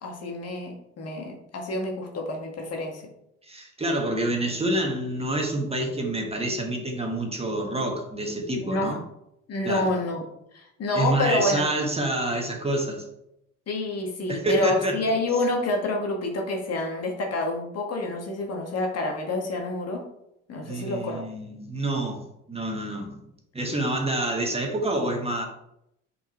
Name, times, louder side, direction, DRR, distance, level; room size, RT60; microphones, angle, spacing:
voice 1, 0.0-3.0 8.6-9.0 9.5-10.2 10.5-11.7 13.7-20.0 20.5-21.2, left 2 dB, 45° left, 1 dB, 1.9 m, -28 dB
voice 2, 3.5-9.0 9.6-9.9 10.9-13.0 14.3-15.0 20.6-23.1 23.5-25.4, right 1 dB, 15° right, 2 dB, 1.7 m, -27 dB
5.5 x 4.9 x 4.5 m, 0.80 s
hypercardioid pair, 65°, 34 cm